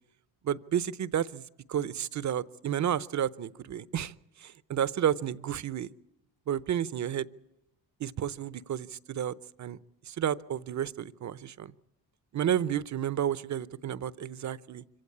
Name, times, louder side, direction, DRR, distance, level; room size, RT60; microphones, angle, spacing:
voice 1, 0.4-1.4 1.7-4.1 4.4-5.9 6.5-7.3 8.0-9.8 10.1-11.7 12.3-14.8, right 9 dB, 50° right, 18 dB, 0.8 m, -31 dB
25.0 x 15.5 x 8.6 m, 0.94 s
cardioid pair, 85°, 36 cm